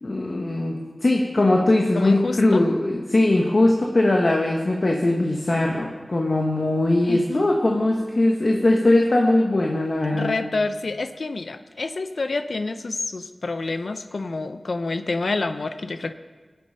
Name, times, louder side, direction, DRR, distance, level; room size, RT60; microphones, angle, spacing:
voice 1, 0.0-10.3, left 2 dB, 55° left, 0 dB, 1.3 m, -20 dB
voice 2, 1.9-2.7 7.1-7.5 10.1-16.1, left 3 dB, 75° left, 11 dB, 0.6 m, -28 dB
18.5 x 7.7 x 5.6 m, 1.4 s
wide cardioid pair, 55°, 0 cm